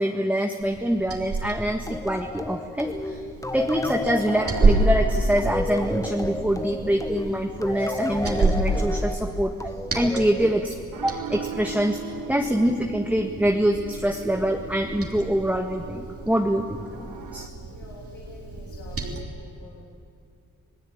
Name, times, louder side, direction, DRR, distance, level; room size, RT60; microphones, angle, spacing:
voice 1, 0.0-3.2 3.5-9.5 9.9-10.8 11.0-17.5, equal, 5° right, 2 dB, 1.7 m, -25 dB
Liquid, 0.6-19.2, right 2 dB, 50° right, 3.5 m, -30 dB
sound 1, 1.9-11.1, left 1 dB, 10° left, 1.2 m, -33 dB
sound 2, 4.2-17.5, right 6 dB, 80° right, 1.8 m, -41 dB
voice 2, 17.7-19.8, left 3 dB, 85° left, -3 dB, 3.2 m, -47 dB
27.5 x 18.0 x 8.8 m, 2.6 s
cardioid pair, 80°, 30 cm